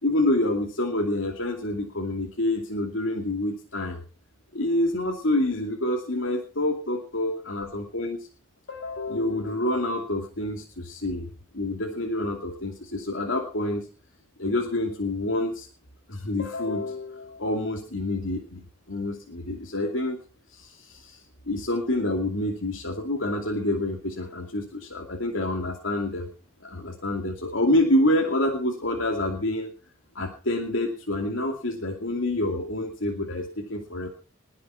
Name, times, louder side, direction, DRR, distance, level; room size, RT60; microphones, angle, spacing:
voice 1, 0.0-4.0 4.5-8.3 8.7-11.3 11.5-13.9 14.4-15.7 16.1-20.2 20.5-21.2 21.5-26.3 26.6-29.7 30.1-34.1, left 1 dB, 75° left, 1 dB, 2.6 m, -27 dB
21.0 x 7.7 x 5.7 m, 0.37 s
head